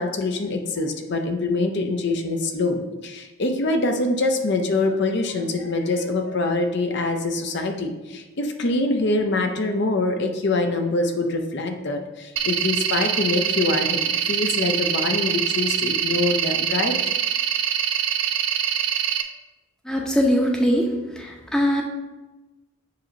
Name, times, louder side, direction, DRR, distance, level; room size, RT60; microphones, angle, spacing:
voice 1, 0.0-17.0, left 2 dB, 55° left, 4 dB, 0.6 m, -24 dB
sound 1, 12.4-19.2, right 8 dB, 60° right, 0.5 m, -24 dB
voice 2, 19.8-20.9 21.1-21.8, equal, 5° left, 0 dB, 0.8 m, -21 dB
7.6 x 2.9 x 5.1 m, 1.1 s
head